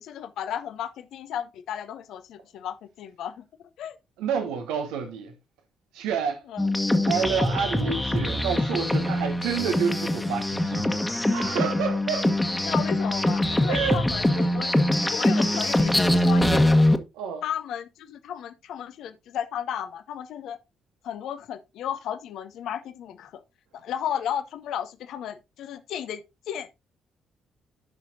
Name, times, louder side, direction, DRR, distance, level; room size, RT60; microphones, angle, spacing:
voice 1, 0.0-3.4 3.8-4.0 6.5-6.7 12.6-14.7 15.1-16.8 17.4-20.6 21.0-23.4 23.7-26.7, left 9 dB, 65° left, 0.7 m, -34 dB
voice 2, 4.2-5.3 5.9-6.4 7.1-11.0 11.3-12.3 13.7-14.0 15.5-15.6 17.1-17.4, right 6 dB, 70° right, 0.9 m, -29 dB
sound 1, 6.6-17.0, left 1 dB, 10° left, 1.3 m, -23 dB
13.5 x 5.8 x 2.7 m
figure-of-eight pair, 40°, 0 cm